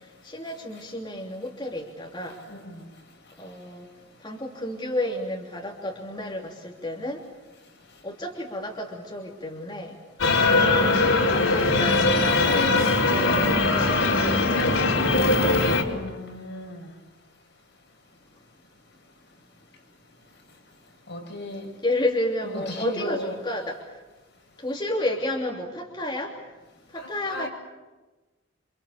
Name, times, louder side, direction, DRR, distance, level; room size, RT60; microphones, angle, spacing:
voice 1, 0.2-2.3 3.4-3.9 4.2-7.2 8.0-9.9 11.3-14.8 21.8-23.9 24.6-26.3 26.9-27.5, left 1 dB, 20° left, -2 dB, 3.1 m, -31 dB
voice 2, 2.5-2.9 15.5-16.9 21.1-21.7 22.4-23.4 27.0-27.5, equal, 60° left, 1 dB, 7.5 m, -36 dB
sound 1, 10.2-15.8, left 2 dB, 80° left, 4.5 m, -21 dB
29.5 x 26.5 x 7.3 m, 1.2 s
head